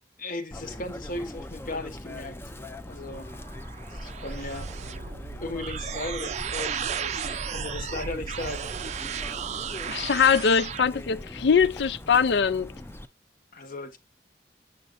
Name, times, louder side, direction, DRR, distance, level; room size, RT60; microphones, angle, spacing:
voice 1, 0.2-2.4 2.9-3.3 3.9-4.7 5.4-8.7 13.5-14.0, left 2 dB, 50° left, 1.2 m, -36 dB
Chirp tweet, 0.5-13.1, left 1 dB, 15° left, 0.5 m, -41 dB
sound 1, 3.1-10.8, right 7 dB, 40° right, 0.4 m, -34 dB
voice 2, 9.9-12.7, left 6 dB, 70° left, 0.4 m, -22 dB
8.1 x 6.4 x 2.6 m
head